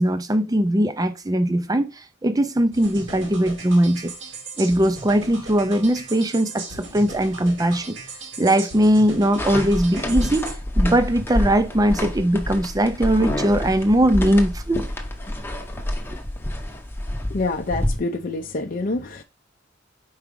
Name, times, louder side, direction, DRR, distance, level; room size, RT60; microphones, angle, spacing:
voice 1, 0.0-1.9 2.2-4.1 4.6-8.0 8.4-14.8, right 1 dB, 20° right, 0.5 m, -20 dB
sound 1, 2.7-10.5, right 3 dB, 70° right, 2.0 m, -38 dB
sound 2, 9.4-18.0, left 1 dB, 10° left, 0.8 m, -27 dB
voice 2, 17.3-19.2, left 2 dB, 45° left, 0.5 m, -26 dB
4.8 x 4.7 x 5.2 m
head